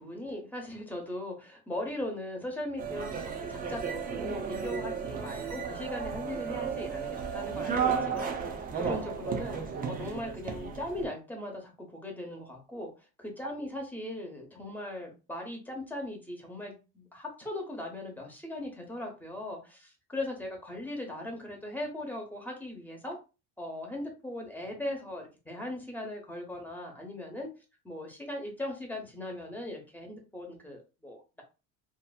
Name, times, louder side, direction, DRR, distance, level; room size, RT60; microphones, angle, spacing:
voice 1, 0.0-12.9 13.2-23.2 23.6-27.5 27.8-31.4, left 1 dB, 5° left, 0 dB, 0.9 m, -39 dB
sound 1, 2.8-11.1, right 6 dB, 25° right, 0.6 m, -34 dB
2.8 x 2.6 x 2.4 m, 0.30 s
cardioid pair, 125°, 33 cm